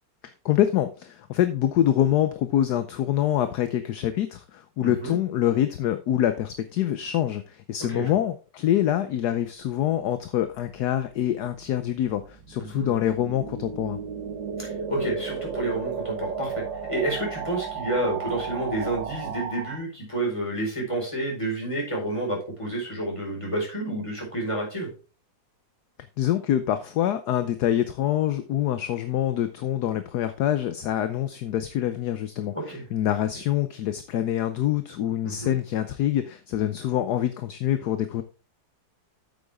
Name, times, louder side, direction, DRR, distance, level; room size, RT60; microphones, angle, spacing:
voice 1, 0.2-14.0 26.2-38.2, left 11 dB, 70° left, 10 dB, 1.2 m, -25 dB
voice 2, 4.8-5.1 7.9-8.1 12.6-12.9 14.6-16.6 16.9-24.9 32.5-32.8 35.2-35.5, right 1 dB, 15° left, -2 dB, 4.7 m, -29 dB
sound 1, 10.5-19.8, right 6 dB, 80° right, 2.0 m, -34 dB
8.7 x 7.9 x 3.5 m, 0.34 s
omnidirectional pair, 2.0 m